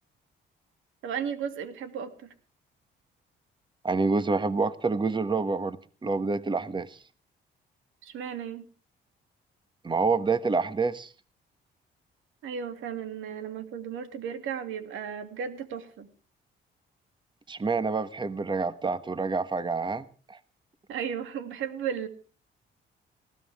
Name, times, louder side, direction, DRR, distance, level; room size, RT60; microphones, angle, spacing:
voice 1, 1.0-2.3 8.0-8.6 12.4-16.1 20.9-22.1, right 7 dB, 85° right, 8 dB, 2.5 m, -35 dB
voice 2, 3.8-7.0 9.8-11.1 17.5-20.4, right 4 dB, 25° right, 13 dB, 1.1 m, -27 dB
19.5 x 15.5 x 3.5 m, 0.37 s
cardioid pair, 90°, 20 cm